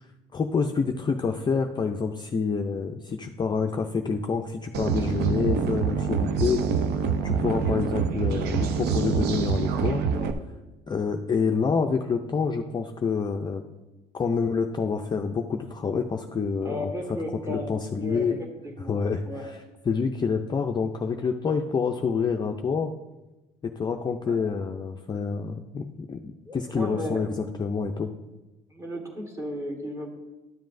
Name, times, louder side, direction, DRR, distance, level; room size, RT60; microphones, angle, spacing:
voice 1, 0.3-6.6 7.2-10.0 10.9-13.6 14.1-17.2 17.5-18.4 18.8-19.6 19.9-22.9 23.6-27.3 27.6-28.1, left 5 dB, 25° left, 4 dB, 0.4 m, -27 dB
sound 1, 4.7-10.3, right 6 dB, 75° right, 0.7 m, -26 dB
voice 2, 16.6-18.5 18.8-18.9 19.2-19.5 24.2-24.4 26.4-27.4 28.7-30.2, equal, 15° right, 2 dB, 1.7 m, -35 dB
12.5 x 7.3 x 2.6 m, 1.1 s
cardioid pair, 110°, 17 cm